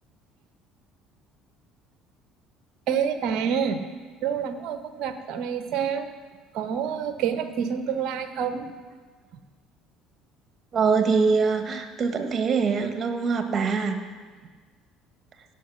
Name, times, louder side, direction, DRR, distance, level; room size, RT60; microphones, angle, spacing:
voice 1, 2.9-3.8 4.2-6.1 6.5-8.7, right 7 dB, 60° right, 9 dB, 0.9 m, -27 dB
voice 2, 10.7-14.0, right 5 dB, 40° right, 7 dB, 1.5 m, -23 dB
16.5 x 5.8 x 6.0 m, 1.4 s
hypercardioid pair, 60°, 0 cm